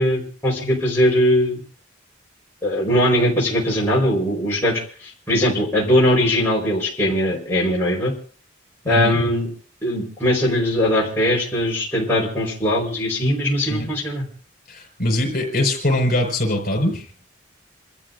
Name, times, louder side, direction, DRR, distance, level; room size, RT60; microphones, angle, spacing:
voice 1, 0.0-1.6 2.6-8.1 8.9-9.5 9.8-14.3, equal, 10° left, -6 dB, 4.5 m, -20 dB
voice 2, 8.8-9.2 13.7-13.9 14.7-17.1, left 1 dB, 50° left, 4 dB, 5.2 m, -22 dB
28.5 x 13.5 x 2.6 m, 0.42 s
head